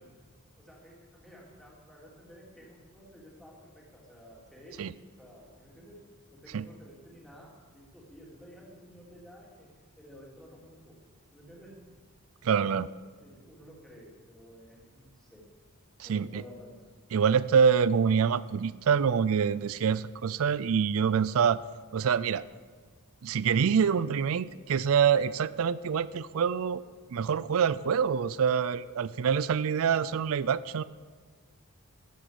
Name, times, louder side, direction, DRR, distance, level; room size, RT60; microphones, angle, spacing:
voice 1, 0.6-4.9 5.2-6.0 6.3-9.7 10.0-11.0 11.3-11.7 13.0-15.4 16.0-16.7, equal, ahead, -4 dB, 3.5 m, -52 dB
voice 2, 12.4-12.9 16.0-16.4 17.1-21.6 21.9-22.4 23.2-26.8 27.1-30.8, right 7 dB, 70° right, 18 dB, 0.4 m, -26 dB
13.5 x 10.0 x 6.9 m, 1.5 s
head